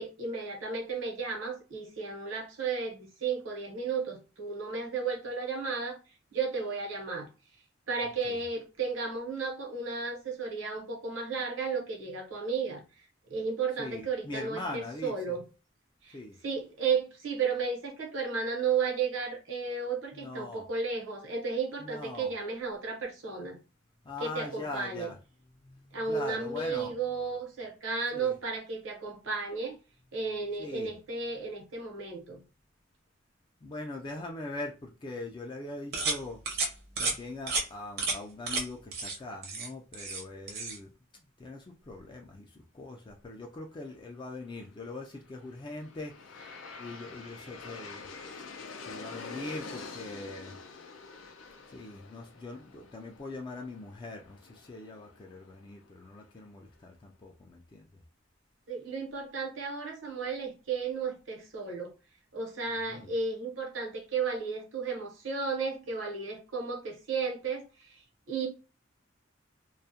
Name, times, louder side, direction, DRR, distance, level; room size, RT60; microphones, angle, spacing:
voice 1, 0.0-6.0 6.3-7.3 7.9-12.8 13.3-15.4 16.0-16.1 16.4-23.6 24.2-25.1 25.9-29.8 30.1-32.4 58.7-61.9 62.3-67.6 68.3-68.5, right 5 dB, 80° right, 0.9 m, -33 dB
voice 2, 8.0-8.4 13.8-15.4 16.0-16.4 20.1-20.7 21.8-22.3 24.0-25.2 25.5-27.3 28.1-28.4 30.6-30.9 33.6-36.7 37.0-48.5 48.8-50.6 51.7-58.0 62.7-63.2, left 2 dB, 25° left, 0.3 m, -42 dB
sound 1, 35.9-36.2 36.5-36.7 37.0-37.2 37.5-37.6 38.0-38.2 38.5-38.6 38.9-39.2 39.4-40.2 40.5-40.8, right 3 dB, 55° right, 0.6 m, -31 dB
Aircraft, 45.2-56.3, left 4 dB, 85° left, 0.4 m, -47 dB
2.3 x 2.1 x 2.7 m
head